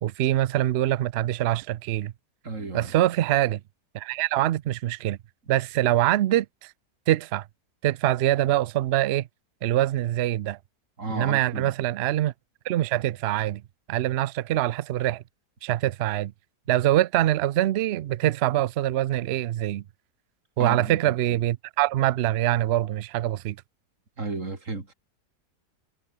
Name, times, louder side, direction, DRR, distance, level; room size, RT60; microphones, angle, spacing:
voice 1, 0.0-2.1 2.7-3.6 3.9-5.2 5.5-6.7 7.1-7.4 7.8-9.3 9.6-10.6 11.1-12.3 12.6-13.6 13.9-15.2 15.6-16.3 16.7-19.8 20.6-23.6, right 14 dB, 85° right, 0.5 m, -24 dB
voice 2, 2.4-2.9 11.0-11.7 20.6-20.9 24.2-24.9, right 3 dB, 50° right, 3.6 m, -32 dB
omnidirectional pair, 1.7 m